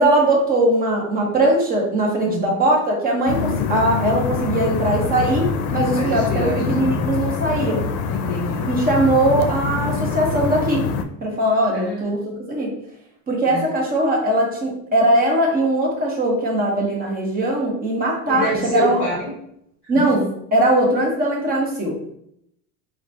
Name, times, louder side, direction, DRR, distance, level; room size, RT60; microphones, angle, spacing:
voice 1, 0.0-7.8 8.7-10.9 11.2-12.7 13.3-19.0 19.9-22.0, right 1 dB, 20° right, -1 dB, 0.8 m, -20 dB
sound 1, 3.3-11.0, left 5 dB, 80° left, 0.5 m, -24 dB
voice 2, 5.9-7.0 8.1-8.7 11.7-12.4 13.4-13.7 18.3-19.3 19.9-20.1, left 1 dB, 30° left, -4 dB, 0.9 m, -27 dB
4.6 x 2.1 x 2.6 m, 0.73 s
cardioid pair, 145°, 42 cm